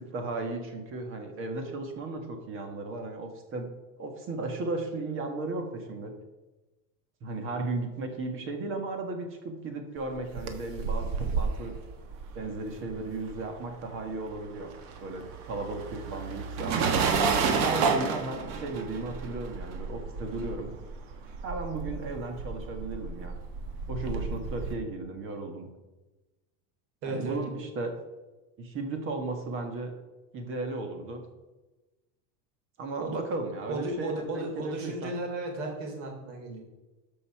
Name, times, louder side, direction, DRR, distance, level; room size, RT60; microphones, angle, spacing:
voice 1, 0.0-3.7 4.0-6.1 7.2-11.7 12.3-14.7 15.0-17.0 17.5-20.7 21.4-23.4 23.9-25.7 27.1-27.9 28.6-29.9 30.3-31.2 32.8-35.2, right 3 dB, 30° right, 5 dB, 1.5 m, -35 dB
sound 1, 10.1-13.8 14.0-24.8, right 5 dB, 50° right, 1.5 m, -31 dB
voice 2, 27.0-27.4 33.0-33.2 33.7-36.6, right 2 dB, 70° right, 1 dB, 3.6 m, -34 dB
13.5 x 5.5 x 5.8 m, 1.1 s
cardioid pair, 175°, 38 cm